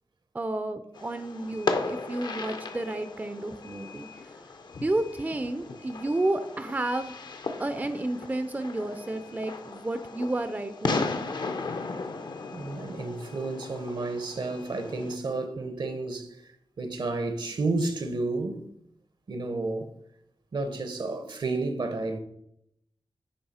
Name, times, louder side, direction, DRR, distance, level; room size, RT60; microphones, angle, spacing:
voice 1, 0.3-4.4 4.8-7.1 7.6-11.1, right 2 dB, 20° right, 0.4 m, -31 dB
Fireworks, 0.9-15.2, left 3 dB, 60° left, 0.6 m, -36 dB
voice 2, 12.5-16.4 16.8-18.6 19.3-19.9 20.5-22.2, right 3 dB, 65° right, 0.9 m, -31 dB
9.5 x 3.2 x 4.2 m
wide cardioid pair, 70°, 8 cm